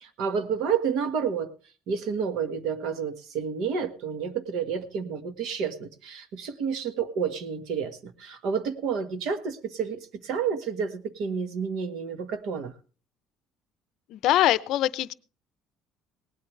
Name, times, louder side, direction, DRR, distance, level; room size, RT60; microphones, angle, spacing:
voice 1, 0.0-1.5 1.9-12.7, right 6 dB, 65° right, 10 dB, 1.5 m, -30 dB
voice 2, 14.1-15.1, left 14 dB, 60° left, 17 dB, 0.6 m, -23 dB
18.5 x 12.5 x 3.2 m, 0.37 s
cardioid pair, 155°, 0 cm